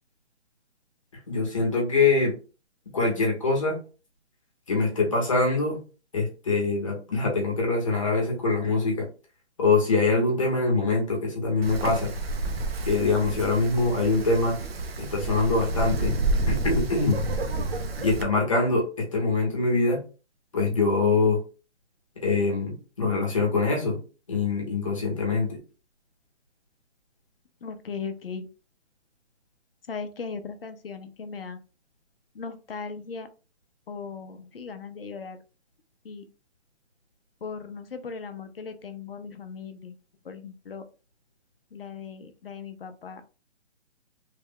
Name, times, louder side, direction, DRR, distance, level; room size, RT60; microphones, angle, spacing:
voice 1, 1.1-2.3 2.9-3.8 4.7-5.8 6.1-9.1 9.6-12.1 12.9-14.6 15.0-16.1 16.5-17.3 18.0-20.0 20.5-21.4 22.2-24.0 24.3-25.6, left 3 dB, 30° left, -1 dB, 1.0 m, -24 dB
Wind, 11.6-18.2, right 2 dB, 60° right, 0.7 m, -29 dB
voice 2, 27.6-28.5 29.9-31.6 32.3-33.3 33.9-35.4 36.0-36.2 37.4-39.9 40.2-40.8 41.7-43.2, left 5 dB, 55° left, 8 dB, 0.6 m, -38 dB
3.3 x 2.3 x 3.5 m, 0.34 s
hypercardioid pair, 175°, 34 cm